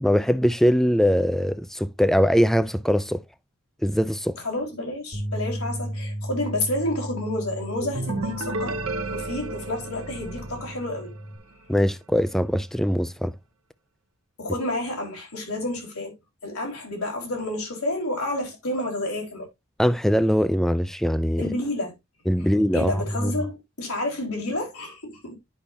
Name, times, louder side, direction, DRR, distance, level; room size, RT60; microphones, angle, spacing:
voice 1, 0.0-3.2 3.8-4.4 11.7-13.3 19.8-21.4 22.3-23.3, equal, ahead, 0.4 m, -22 dB
voice 2, 4.4-8.8 9.1-11.1 14.4-16.1 16.4-19.5 21.4-21.9 22.4-25.4, left 1 dB, 90° left, 4.1 m, -30 dB
sound 1, 5.1-11.4, equal, 60° left, 2.0 m, -35 dB
sound 2, 7.8-11.5, right 2 dB, 75° right, 1.1 m, -32 dB
10.5 x 5.8 x 2.7 m
head